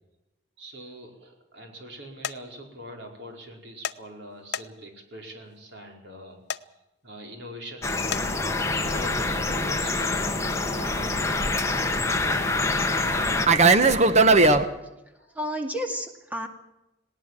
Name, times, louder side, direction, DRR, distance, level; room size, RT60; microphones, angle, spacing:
voice 1, 0.6-6.7 7.0-11.5 14.8-15.4, equal, 60° right, 2 dB, 4.8 m, -43 dB
sound 1, 2.2-2.4 3.8-4.0 4.5-5.0 6.5-6.6 8.1-8.3, left 8 dB, 55° left, 0.6 m, -31 dB
sound 2, 7.8-13.5, left 3 dB, 15° left, 1.4 m, -26 dB
Fixed-wing aircraft airplane, 8.1-14.6, right 3 dB, 35° right, 1.1 m, -23 dB
voice 2, 14.7-16.5, equal, 10° right, 4 dB, 2.2 m, -33 dB
19.0 x 18.5 x 7.5 m, 0.95 s
head